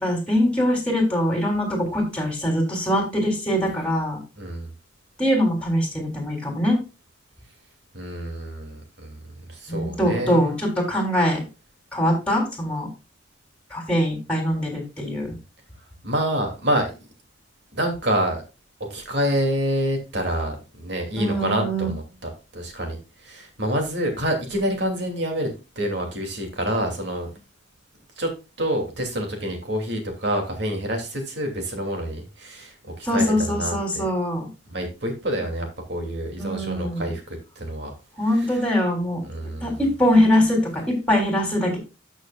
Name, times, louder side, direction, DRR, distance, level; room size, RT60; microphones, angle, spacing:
voice 1, 0.0-4.2 5.2-6.8 9.7-11.4 11.9-12.9 13.7-15.3 21.2-21.9 33.0-34.5 36.4-37.1 38.2-41.8, equal, 5° left, 1 dB, 3.4 m, -22 dB
voice 2, 4.4-4.7 7.9-9.2 9.5-10.5 16.0-16.9 17.7-18.4 18.8-22.0 22.5-23.0 23.2-25.5 25.8-27.3 28.2-28.3 28.6-34.0 34.7-37.2 37.6-37.9 39.2-39.8, equal, 60° right, 3 dB, 2.8 m, -27 dB
13.0 x 6.4 x 2.4 m, 0.28 s
head